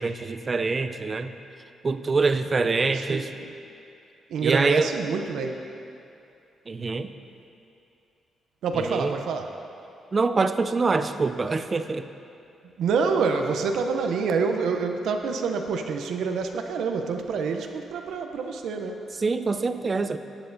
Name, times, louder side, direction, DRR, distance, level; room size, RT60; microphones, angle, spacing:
voice 1, 0.0-1.3 1.8-3.3 4.4-4.9 6.7-7.1 8.8-9.1 10.1-12.0 19.2-20.2, right 4 dB, 30° right, 10 dB, 0.4 m, -25 dB
voice 2, 2.6-3.5 4.3-5.6 8.6-9.6 12.8-19.1, right 5 dB, 80° right, 5 dB, 0.6 m, -27 dB
14.0 x 8.9 x 2.6 m, 2.6 s
cardioid pair, 110°, 0 cm